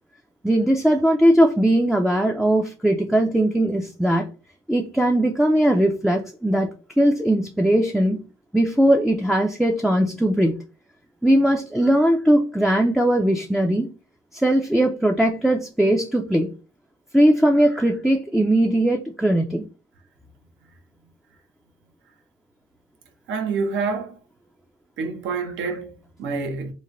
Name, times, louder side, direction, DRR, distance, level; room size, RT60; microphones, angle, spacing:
voice 1, 0.4-4.3 4.7-8.2 8.5-10.6 11.2-13.9 14.3-16.5 17.1-19.7, right 1 dB, ahead, 0.4 m, -19 dB
voice 2, 23.3-24.2 25.0-26.7, right 4 dB, 75° right, 0.8 m, -27 dB
3.1 x 2.1 x 3.7 m
cardioid pair, 90°, 20 cm